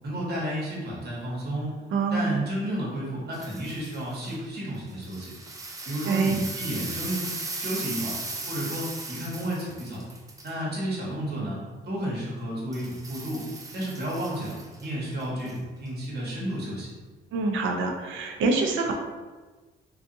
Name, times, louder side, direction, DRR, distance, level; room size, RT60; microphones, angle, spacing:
voice 1, 0.0-1.7 2.1-5.3 5.8-7.3 7.5-8.2 8.5-10.0 10.4-11.6 11.8-13.4 13.7-16.9, right 1 dB, 55° right, -5 dB, 1.0 m, -32 dB
voice 2, 1.9-2.4 6.0-6.4 17.3-18.9, right 4 dB, 80° right, 2 dB, 0.5 m, -25 dB
sound 1, 3.3-4.4 4.9-10.5 12.7-15.6 15.9-16.0, right 3 dB, 15° right, 0.4 m, -38 dB
2.6 x 2.3 x 2.6 m, 1.3 s
cardioid pair, 90°, 20 cm